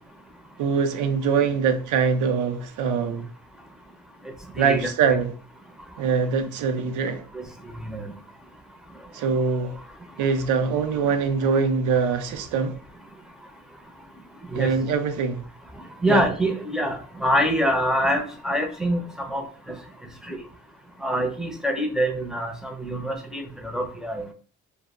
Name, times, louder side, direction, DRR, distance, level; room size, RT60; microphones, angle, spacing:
voice 1, 0.6-3.3 4.6-5.3 6.0-7.2 9.1-9.8 10.2-12.8 14.5-15.4 16.1-16.2, right 5 dB, 80° right, 0.5 m, -23 dB
voice 2, 4.6-5.2 7.3-7.4 7.8-8.0 14.5-14.7 16.0-19.0 19.3-19.5 20.3-20.4 21.0-24.2, equal, ahead, 0.5 m, -25 dB
2.1 x 2.0 x 3.5 m
cardioid pair, 90°, 30 cm